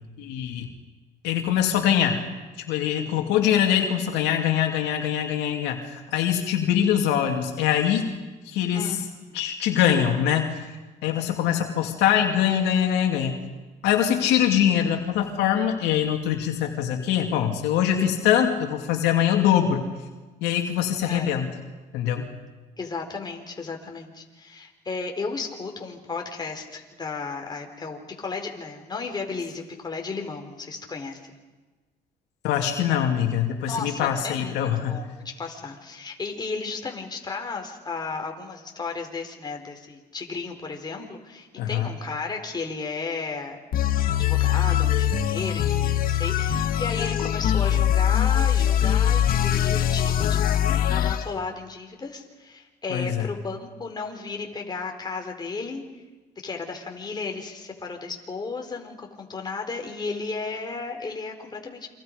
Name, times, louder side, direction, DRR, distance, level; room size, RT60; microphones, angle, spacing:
voice 1, 0.2-0.7 1.2-2.2 2.7-8.1 8.5-9.0 9.3-10.5 11.0-13.4 13.8-19.9 20.4-21.5 21.9-22.3 32.4-35.0 41.6-41.9 52.9-53.3, left 9 dB, 90° left, 3 dB, 2.7 m, -23 dB
voice 2, 21.1-21.5 22.8-31.2 33.6-55.8 56.4-61.9, left 4 dB, 25° left, 2 dB, 4.0 m, -34 dB
sound 1, 43.7-51.3, left 10 dB, 60° left, 1.5 m, -22 dB
29.0 x 25.0 x 5.3 m, 1.2 s
cardioid pair, 110°, 17 cm